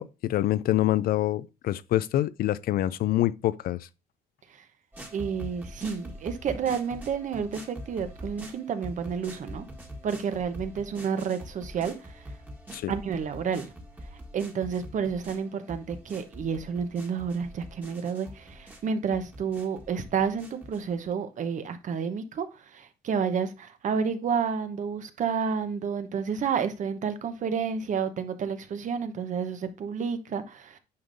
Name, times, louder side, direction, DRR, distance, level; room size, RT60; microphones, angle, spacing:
voice 1, 0.0-3.8 12.7-12.9, left 14 dB, 60° left, 0.5 m, -26 dB
sound 1, 4.9-21.1, equal, 10° right, 1.5 m, -44 dB
voice 2, 5.1-9.7 10.0-12.2 12.9-13.7 14.3-30.8, right 6 dB, 50° right, 1.0 m, -30 dB
9.6 x 5.2 x 2.6 m
cardioid pair, 110°, 17 cm